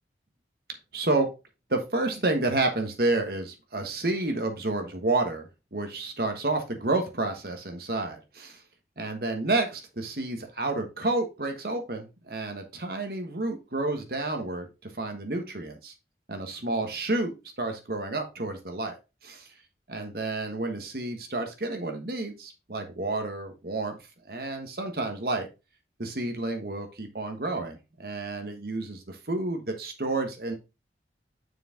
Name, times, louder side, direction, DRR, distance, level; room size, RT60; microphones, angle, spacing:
voice 1, 0.9-1.3 1.7-8.6 9.0-15.9 16.3-18.9 19.2-19.5 19.9-23.9 24.3-25.5 26.0-30.5, right 2 dB, 55° right, 5 dB, 1.3 m, -30 dB
6.6 x 4.7 x 3.6 m, 0.28 s
head